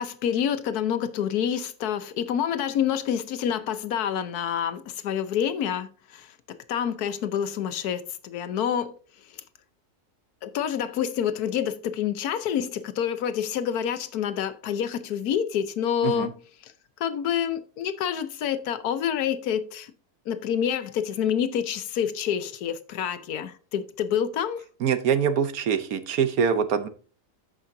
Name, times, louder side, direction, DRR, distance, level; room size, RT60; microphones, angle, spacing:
voice 1, 0.0-6.3 6.7-9.0 10.4-16.7 17.0-19.9 20.3-24.6, left 9 dB, 85° left, 1.3 m, -27 dB
voice 2, 24.8-26.9, right 7 dB, 70° right, 1.3 m, -24 dB
14.5 x 5.6 x 2.7 m
omnidirectional pair, 1.6 m